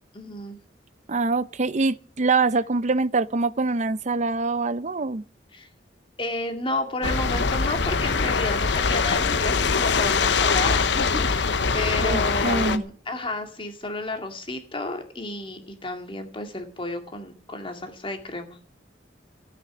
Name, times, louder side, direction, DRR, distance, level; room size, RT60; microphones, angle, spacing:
voice 1, 0.1-0.6 5.5-5.7 6.2-18.6, left 2 dB, 30° left, 2.2 m, -32 dB
voice 2, 1.1-5.2 12.0-12.8, right 3 dB, 40° right, 0.7 m, -24 dB
sound 1, 7.0-12.8, left 5 dB, 70° left, 0.9 m, -23 dB
14.5 x 9.5 x 7.0 m
head